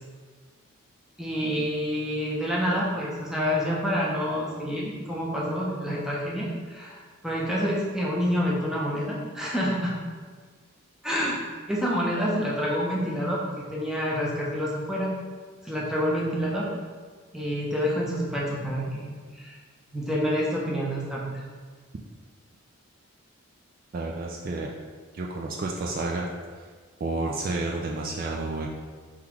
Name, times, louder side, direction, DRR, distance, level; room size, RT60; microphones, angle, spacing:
voice 1, 1.2-9.9 11.0-11.4 11.7-15.1 15.6-16.7 17.3-19.6 19.9-21.4, equal, ahead, -5 dB, 0.6 m, -28 dB
voice 2, 23.9-24.7 25.1-26.3 27.0-28.7, right 2 dB, 40° right, -1 dB, 0.3 m, -30 dB
3.8 x 2.9 x 4.6 m, 1.6 s
head